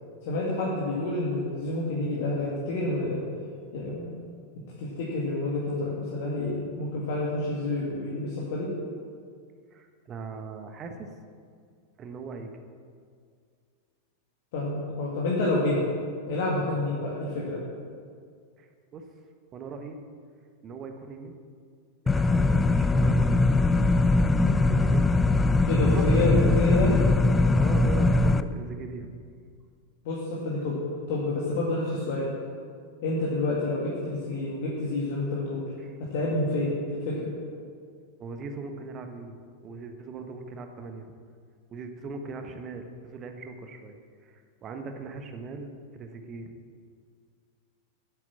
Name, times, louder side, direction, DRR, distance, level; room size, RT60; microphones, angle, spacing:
voice 1, 0.2-3.2 3.7-4.2 4.8-8.7 14.5-15.8 16.3-17.6 25.7-27.0 30.0-30.8 31.1-32.3 33.0-35.6 36.0-37.3, left 2 dB, 50° left, -5 dB, 2.0 m, -28 dB
voice 2, 9.7-11.1 12.0-12.5 18.6-19.0 19.5-20.0 20.6-21.4 22.0-25.0 25.8-26.1 27.5-29.1 35.8-35.9 38.2-41.1 41.7-44.0 44.2-45.7 45.9-46.5, right 4 dB, 30° right, 6 dB, 1.1 m, -40 dB
sound 1, 22.1-28.4, left 2 dB, 15° left, 0.4 m, -21 dB
9.3 x 7.9 x 7.2 m, 2.2 s
figure-of-eight pair, 90°, 0 cm